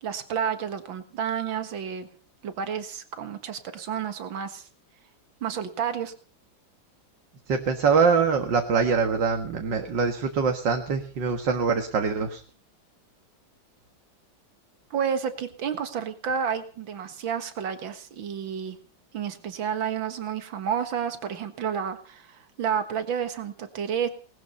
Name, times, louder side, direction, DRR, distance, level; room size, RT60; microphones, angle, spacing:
voice 1, 0.0-2.1 2.4-4.7 5.4-6.1 14.9-18.8 19.1-24.1, right 7 dB, 85° right, 9 dB, 2.3 m, -30 dB
voice 2, 7.5-12.4, right 5 dB, 70° right, 5 dB, 2.2 m, -24 dB
19.5 x 13.5 x 5.4 m, 0.41 s
omnidirectional pair, 2.1 m